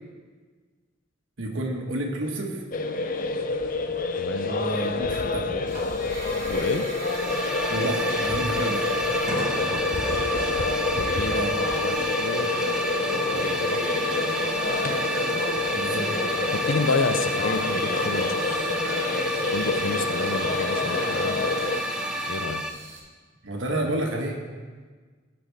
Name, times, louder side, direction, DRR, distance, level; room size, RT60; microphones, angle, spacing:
voice 1, 1.4-2.6 4.4-5.5 7.7-8.9 11.3-11.6 15.7-16.1 23.4-24.4, right 1 dB, 90° right, 1 dB, 1.5 m, -30 dB
sound 1, 2.7-21.8, left 3 dB, 45° left, 0.5 m, -28 dB
voice 2, 4.2-4.5 6.5-6.9 9.6-10.0 11.0-11.4 11.8-12.5 13.3-13.9 16.5-18.6 19.5-21.4 22.3-22.6, left 3 dB, 85° left, 9 dB, 0.6 m, -30 dB
Hiss / Fire, 5.7-23.0, right 2 dB, 40° right, 1.6 m, -36 dB
sound 2, 7.0-22.7, equal, 5° right, 0.4 m, -30 dB
16.0 x 6.0 x 3.4 m, 1.5 s
head